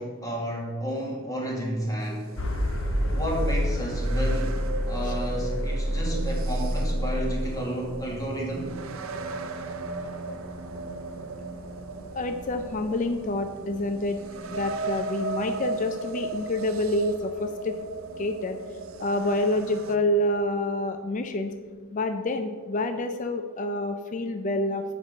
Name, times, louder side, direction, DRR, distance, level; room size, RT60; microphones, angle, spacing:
voice 1, 0.0-2.3 3.0-4.6 4.9-8.8, equal, 20° left, -2 dB, 2.0 m, -31 dB
sound 1, 2.0-20.0, right 3 dB, 80° right, 0.7 m, -37 dB
sound 2, 2.4-18.3, equal, 70° left, 1.2 m, -31 dB
voice 2, 12.1-14.2 14.5-17.8 18.2-18.6 19.0-21.5 21.9-24.8, left 1 dB, 40° left, 7 dB, 0.5 m, -27 dB
7.7 x 5.3 x 6.5 m, 1.5 s
head